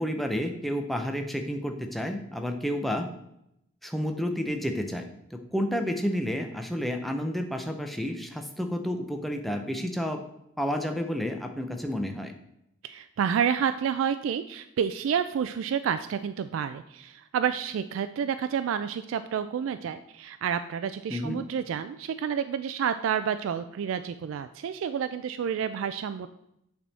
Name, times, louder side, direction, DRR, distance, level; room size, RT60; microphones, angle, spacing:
voice 1, 0.0-3.1 3.8-10.2 10.6-12.3 21.1-21.4, equal, ahead, 4 dB, 0.6 m, -30 dB
voice 2, 12.8-26.3, right 7 dB, 90° right, 11 dB, 0.3 m, -29 dB
8.5 x 3.5 x 4.1 m, 0.79 s
head